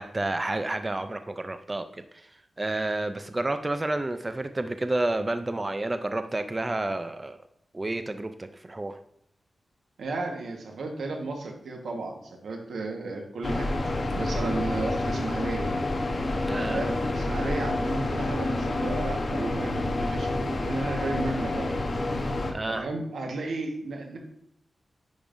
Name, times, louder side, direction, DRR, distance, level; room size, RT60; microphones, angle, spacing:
voice 1, 0.0-2.3 2.6-7.4 7.7-9.0 16.5-16.9 22.5-22.9, right 2 dB, 25° right, 9 dB, 0.4 m, -30 dB
voice 2, 10.0-15.7 16.6-21.7 22.7-24.2, right 3 dB, 90° right, 2 dB, 1.3 m, -34 dB
sound 1, 13.4-22.5, left 2 dB, 45° left, 0.9 m, -28 dB
9.6 x 5.3 x 2.6 m, 0.73 s
wide cardioid pair, 120°, 0 cm